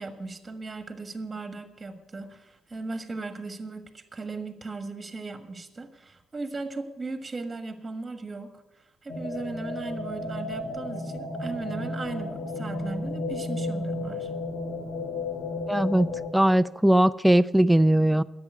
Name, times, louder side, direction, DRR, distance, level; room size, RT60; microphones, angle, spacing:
voice 1, 0.0-8.5 8.7-14.3, right 3 dB, 30° right, 8 dB, 1.5 m, -37 dB
sound 1, 9.1-16.3, left 2 dB, 65° left, 1.8 m, -33 dB
voice 2, 15.7-16.1 16.3-18.2, right 1 dB, 5° right, 13 dB, 0.4 m, -20 dB
10.5 x 7.6 x 9.2 m, 1.0 s
cardioid pair, 90°, 0 cm